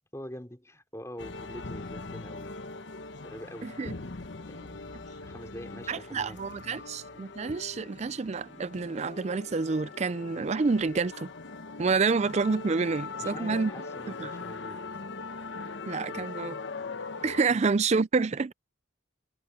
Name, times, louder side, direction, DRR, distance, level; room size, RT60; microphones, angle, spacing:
voice 1, 0.0-2.8 3.2-3.7 4.5-6.4 6.7-6.9 13.1-14.8 16.1-16.4 17.5-17.6, equal, 15° left, 4.3 m, -45 dB
sound 1, 1.2-17.4, left 3 dB, 65° left, 1.1 m, -41 dB
voice 2, 3.6-3.9 5.9-11.3 11.8-13.7 14.2-14.3 15.9-16.6 17.2-18.5, right 4 dB, 35° right, 0.4 m, -28 dB
head